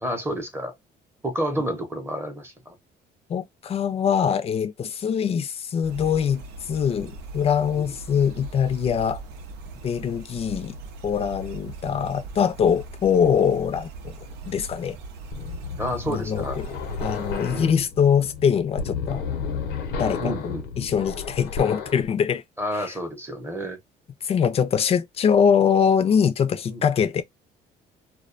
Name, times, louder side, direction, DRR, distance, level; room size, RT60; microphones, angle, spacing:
voice 1, 0.0-0.8 1.2-2.8 7.8-7.9 15.8-16.6 17.5-17.8 20.2-20.9 22.6-23.8 26.7-26.9, equal, 15° right, 0.7 m, -30 dB
voice 2, 3.3-9.2 9.8-10.8 11.0-14.1 14.4-15.0 16.1-16.5 17.0-19.3 20.0-22.4 22.8-22.9 24.2-27.2, left 7 dB, 35° left, 0.4 m, -23 dB
sound 1, 5.8-17.7, right 3 dB, 85° right, 0.6 m, -40 dB
sound 2, 15.3-22.0, left 5 dB, 90° left, 0.7 m, -32 dB
2.3 x 2.2 x 2.4 m
cardioid pair, 110°, 17 cm